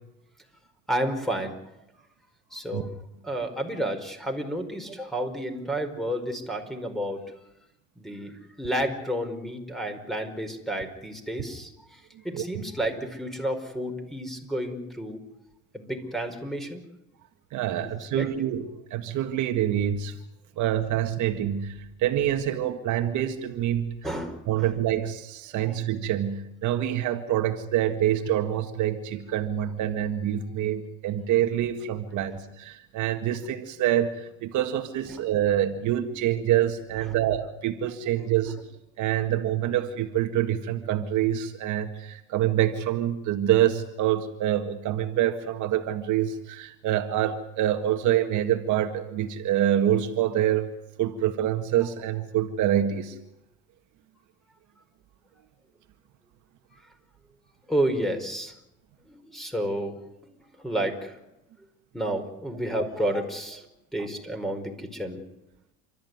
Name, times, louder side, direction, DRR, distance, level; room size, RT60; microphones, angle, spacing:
voice 1, 0.9-1.6 2.5-2.9 3.2-7.2 8.0-15.2 15.7-16.8 18.1-18.3 24.0-24.7 25.5-25.8 35.1-35.2 37.0-37.2 38.2-38.4 56.7-56.8 57.7-58.5 59.1-60.0 60.6-61.2 61.9-63.6 63.9-65.2, right 1 dB, ahead, 6 dB, 4.9 m, -31 dB
voice 2, 17.5-20.2 20.6-21.7 22.0-24.0 24.5-38.6 39.0-50.7 51.0-53.1, right 11 dB, 60° right, 6 dB, 1.9 m, -26 dB
29.0 x 13.5 x 9.6 m, 0.89 s
supercardioid pair, 90°, 33 cm